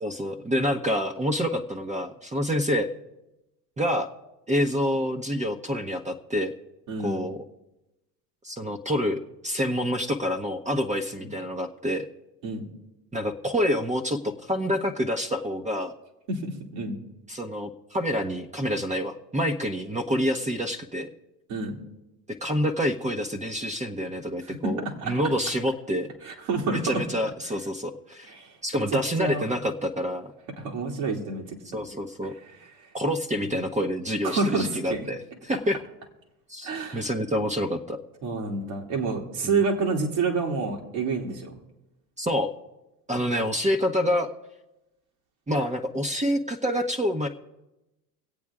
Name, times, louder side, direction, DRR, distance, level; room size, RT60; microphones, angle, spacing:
voice 1, 0.0-2.9 3.8-4.1 4.5-6.5 7.0-7.4 8.4-12.1 13.1-15.9 17.3-21.1 22.4-26.1 26.7-28.3 28.6-30.3 31.7-32.3 32.9-35.2 35.4-35.8 36.5-38.0 42.2-42.5 43.1-44.3 45.5-47.3, equal, 15° right, 4 dB, 1.0 m, -27 dB
voice 2, 6.9-7.2 11.2-11.3 12.4-12.7 16.3-17.0 21.5-21.8 25.0-25.1 26.2-27.0 28.3-28.5 29.2-29.4 30.6-31.5 33.4-33.6 34.2-35.1 36.6-37.1 38.2-41.5, right 4 dB, 65° right, 0 dB, 2.8 m, -28 dB
25.0 x 8.4 x 3.6 m, 0.97 s
hypercardioid pair, 80°, 48 cm